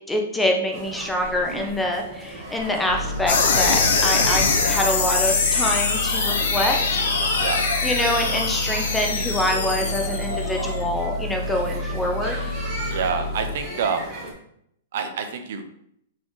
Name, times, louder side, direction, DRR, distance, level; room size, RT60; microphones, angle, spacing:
voice 1, 0.1-7.0 7.8-12.5, left 1 dB, 5° left, 1 dB, 0.5 m, -25 dB
sound 1, 0.7-14.3, right 1 dB, 20° right, 1.0 m, -36 dB
sound 2, 2.9-13.6, left 1 dB, 85° left, 0.5 m, -30 dB
sound 3, 3.3-10.7, left 4 dB, 70° left, 0.9 m, -23 dB
voice 2, 12.9-14.1 14.9-15.6, right 6 dB, 60° right, 7 dB, 0.6 m, -27 dB
4.1 x 3.7 x 3.2 m, 0.73 s
hypercardioid pair, 155°, 0 cm